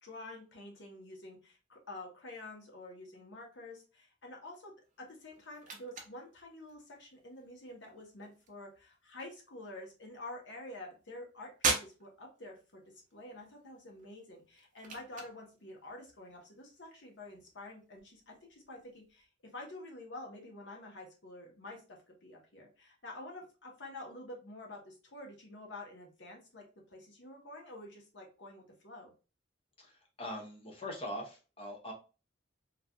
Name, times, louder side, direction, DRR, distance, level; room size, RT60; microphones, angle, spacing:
voice 1, 0.0-11.5 11.8-12.8 13.1-19.3 19.5-29.1, left 2 dB, 65° left, 0 dB, 0.9 m, -48 dB
sound 1, 4.8-19.3, right 4 dB, 40° right, 0.6 m, -44 dB
voice 2, 30.2-31.9, left 1 dB, 30° left, 1 dB, 0.8 m, -42 dB
3.1 x 2.5 x 2.3 m, 0.33 s
head